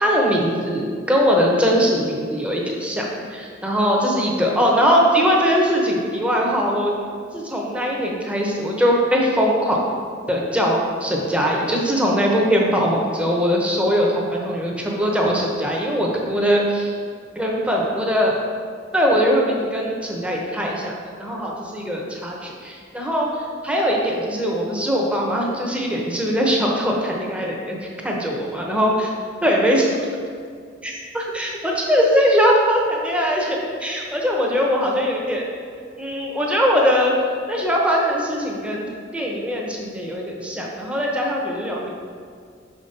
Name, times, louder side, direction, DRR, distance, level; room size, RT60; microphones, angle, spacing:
voice 1, 0.0-6.9 7.3-9.8 10.3-16.9 17.3-18.4 18.9-27.8 28.0-29.1 29.4-30.0 30.8-35.4 36.0-37.1 37.5-38.9 39.1-41.9, equal, 5° right, -2 dB, 0.8 m, -21 dB
6.0 x 5.1 x 4.2 m, 2.2 s
head